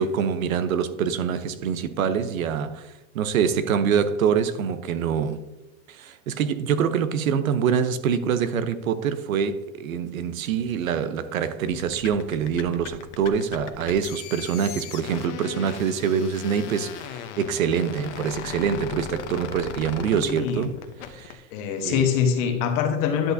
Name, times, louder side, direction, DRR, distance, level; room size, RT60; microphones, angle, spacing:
voice 1, 0.0-5.4 5.9-20.7 21.0-21.4 21.8-22.1, right 7 dB, 85° right, 0.9 m, -25 dB
sound 1, 11.7-21.4, left 9 dB, 60° left, 0.9 m, -38 dB
voice 2, 20.2-20.7 21.5-23.3, left 7 dB, 35° left, 1.1 m, -24 dB
10.5 x 6.3 x 2.7 m
supercardioid pair, 160°, 40 cm